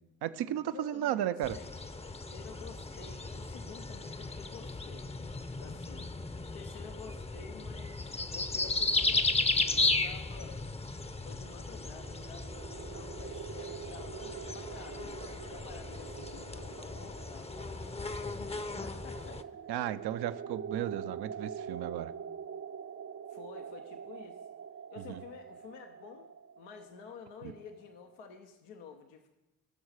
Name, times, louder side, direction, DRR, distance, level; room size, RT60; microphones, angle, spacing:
voice 1, 0.2-1.6 19.7-22.1 25.0-25.2 27.4-27.5, right 11 dB, 70° right, 13 dB, 0.6 m, -34 dB
voice 2, 0.7-1.7 2.0-5.1 5.6-6.1 6.5-10.7 11.2-19.7 23.3-24.5 24.9-29.3, left 6 dB, 85° left, 4 dB, 0.8 m, -51 dB
sound 1, 1.4-19.4, left 3 dB, 15° left, 0.6 m, -35 dB
sound 2, 11.1-28.0, right 7 dB, 30° right, 0.4 m, -45 dB
18.0 x 6.4 x 4.8 m, 1.0 s
hypercardioid pair, 45°, 41 cm